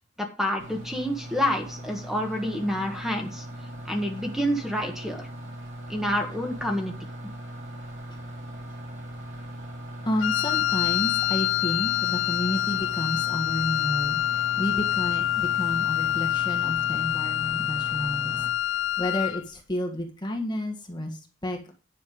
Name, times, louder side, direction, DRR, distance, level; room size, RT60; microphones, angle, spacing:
voice 1, 0.2-3.4 3.8-5.3 5.9-6.9, equal, ahead, 2 dB, 1.7 m, -28 dB
sound 1, 0.6-18.5, right 1 dB, 75° right, 3.6 m, -39 dB
voice 2, 10.0-21.7, left 1 dB, 25° left, 2 dB, 1.7 m, -31 dB
Wind instrument woodwind instrument, 10.2-19.5, left 13 dB, 90° left, 0.5 m, -26 dB
10.5 x 5.8 x 5.3 m, 0.38 s
head